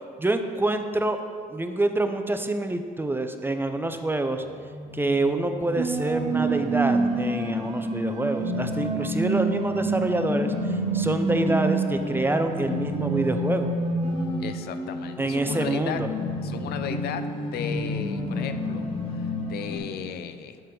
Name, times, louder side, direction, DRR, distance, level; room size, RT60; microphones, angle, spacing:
voice 1, 0.2-1.2 1.5-4.4 4.9-13.7 15.2-16.1, right 2 dB, 10° right, 7 dB, 0.5 m, -26 dB
sound 1, 4.4-19.8, left 2 dB, 30° left, 1.2 m, -32 dB
sound 2, 5.8-14.3, right 3 dB, 45° right, 1.1 m, -28 dB
voice 2, 14.4-16.0 16.4-20.6, left 8 dB, 65° left, 9 dB, 0.4 m, -35 dB
9.0 x 4.2 x 3.9 m, 2.1 s
supercardioid pair, 65°, 18 cm